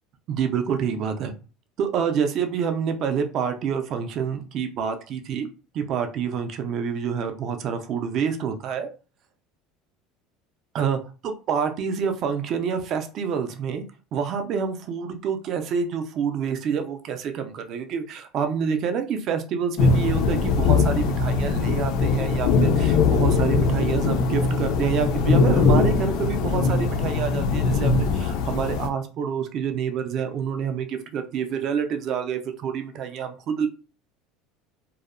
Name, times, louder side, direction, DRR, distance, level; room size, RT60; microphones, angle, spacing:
voice 1, 0.3-1.3 1.8-5.5 5.7-8.9 10.7-13.8 14.1-33.7, right 7 dB, 35° right, 7 dB, 0.3 m, -27 dB
sound 1, 19.8-28.9, left 4 dB, 55° left, 0.3 m, -21 dB
2.6 x 2.0 x 2.5 m, 0.34 s
cardioid pair, 170°, 0 cm